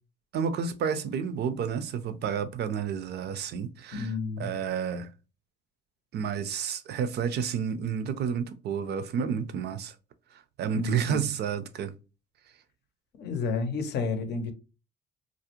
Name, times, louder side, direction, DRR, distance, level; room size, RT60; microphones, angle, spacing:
voice 1, 0.3-5.1 6.1-9.9 10.3-11.9, right 7 dB, 60° right, 0.4 m, -31 dB
voice 2, 3.9-4.5 10.7-11.2 13.2-14.5, left 4 dB, 60° left, 0.6 m, -31 dB
2.5 x 2.0 x 2.8 m
supercardioid pair, 80°, 19 cm